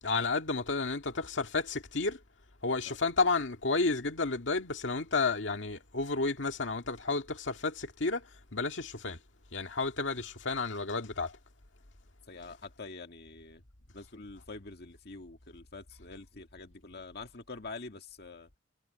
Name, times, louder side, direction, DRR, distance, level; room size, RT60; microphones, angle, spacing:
voice 1, 0.0-2.2 2.6-9.2 9.5-11.4, left 3 dB, 80° left, 2.0 m, -31 dB
voice 2, 12.3-13.6 13.9-18.5, left 3 dB, 60° left, 1.9 m, -46 dB
head